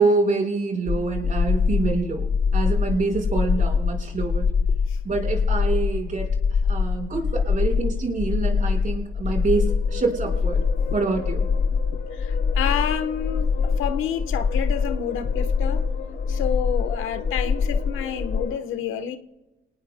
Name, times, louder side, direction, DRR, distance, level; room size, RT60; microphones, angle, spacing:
voice 1, 0.0-2.2 2.5-4.4 5.0-6.3 6.7-10.6 10.9-11.4, right 3 dB, 40° right, 5.0 m, -25 dB
sound 1, 0.9-18.5, left 5 dB, 30° left, 0.7 m, -24 dB
sound 2, 9.2-18.6, left 5 dB, 65° left, 4.4 m, -38 dB
voice 2, 12.1-15.8 16.3-19.2, left 9 dB, 85° left, 1.2 m, -29 dB
29.5 x 18.5 x 2.2 m
cardioid pair, 90°, 20 cm